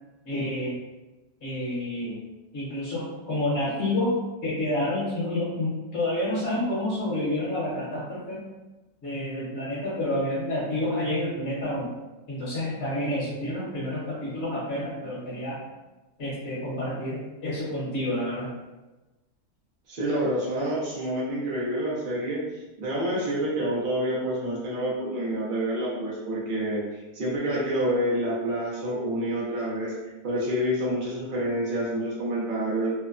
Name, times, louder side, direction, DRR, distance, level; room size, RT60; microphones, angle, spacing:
voice 1, 0.2-0.8 1.4-2.2 2.5-8.5 9.0-11.9 12.3-15.6 16.2-18.5, left 1 dB, 50° left, -9 dB, 1.0 m, -29 dB
voice 2, 19.9-22.4 22.8-32.9, right 1 dB, 70° right, -6 dB, 0.4 m, -28 dB
3.0 x 2.1 x 2.4 m, 1.1 s
omnidirectional pair, 1.7 m